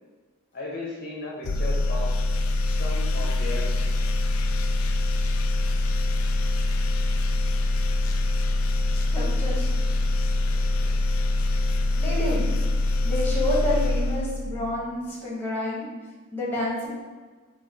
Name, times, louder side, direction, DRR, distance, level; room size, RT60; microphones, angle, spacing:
voice 1, 0.5-2.1 2.7-3.7 10.5-10.9, left 2 dB, 45° left, -4 dB, 0.7 m, -35 dB
sound 1, 1.4-14.8, left 2 dB, 90° left, 0.4 m, -24 dB
voice 2, 9.1-9.7 12.0-12.5 13.0-15.8 16.3-16.9, left 1 dB, 10° left, -6 dB, 1.1 m, -28 dB
3.8 x 2.7 x 4.3 m, 1.4 s
head